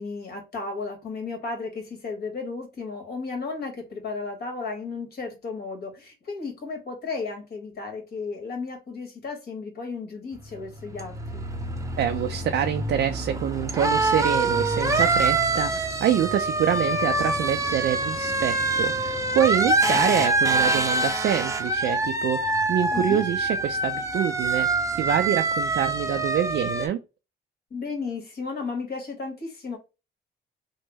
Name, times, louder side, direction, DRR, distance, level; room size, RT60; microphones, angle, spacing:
voice 1, 0.0-11.4 19.9-20.1 22.9-23.2 27.7-29.8, left 4 dB, 55° left, 1.5 m, -34 dB
sound 1, 10.4-26.9, right 2 dB, 15° right, 0.6 m, -25 dB
voice 2, 12.0-27.0, right 10 dB, 60° right, 0.4 m, -26 dB
3.1 x 2.0 x 3.3 m
cardioid pair, 90°, 20 cm